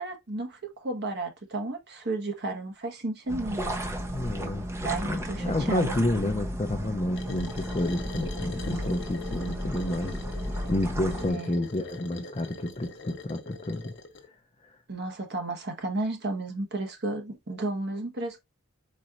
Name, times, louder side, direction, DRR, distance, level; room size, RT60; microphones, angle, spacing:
voice 1, 0.0-3.8 4.8-5.9 11.3-11.5 14.9-18.4, right 2 dB, 55° right, 1.2 m, -33 dB
sound 1, 3.3-11.3, equal, 15° right, 0.7 m, -34 dB
voice 2, 4.1-4.7 5.0-10.2 10.7-13.9 14.6-14.8, left 1 dB, 30° left, 0.5 m, -30 dB
sound 2, 7.1-14.3, left 3 dB, 60° left, 0.8 m, -43 dB
4.3 x 4.2 x 2.4 m
head